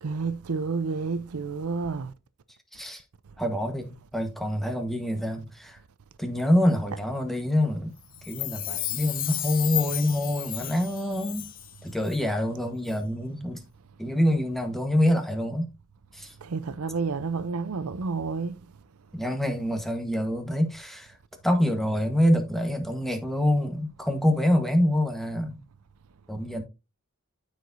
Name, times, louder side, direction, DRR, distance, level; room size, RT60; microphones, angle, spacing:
voice 1, 0.0-2.1 16.4-18.5, right 4 dB, 75° right, 0.6 m, -30 dB
voice 2, 3.4-5.8 6.2-7.9 8.2-11.4 11.8-13.6 14.0-15.7 16.1-16.3 19.1-21.2 21.4-25.6 26.3-26.6, left 1 dB, ahead, 1.3 m, -26 dB
Chime, 8.1-11.8 12.1-12.2, left 13 dB, 40° left, 0.6 m, -33 dB
13.0 x 4.8 x 2.6 m
head